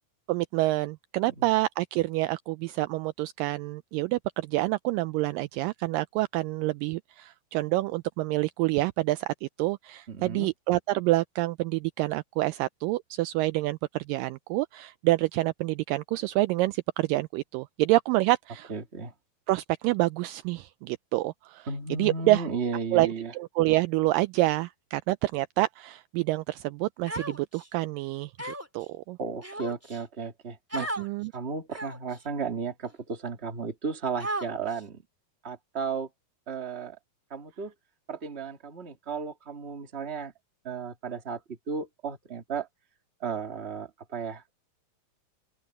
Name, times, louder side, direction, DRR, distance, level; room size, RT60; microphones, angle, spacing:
voice 1, 0.3-18.7 19.5-21.7 22.0-22.4 22.9-29.2 31.0-31.3, right 18 dB, 90° right, 1.9 m, -27 dB
voice 2, 10.1-10.5 18.7-19.1 21.7-23.3 29.2-30.9 31.3-35.0 35.4-36.1 36.5-37.0 37.3-37.7 38.1-40.3 40.6-42.7 43.2-44.4, right 5 dB, 25° right, 1.7 m, -34 dB
Human voice, 27.1-27.7 28.4-28.8 29.4-30.0 30.7-31.1 31.7-32.1 32.8-32.9 34.2-34.8, right 1 dB, 5° right, 2.1 m, -35 dB
open air
omnidirectional pair, 4.4 m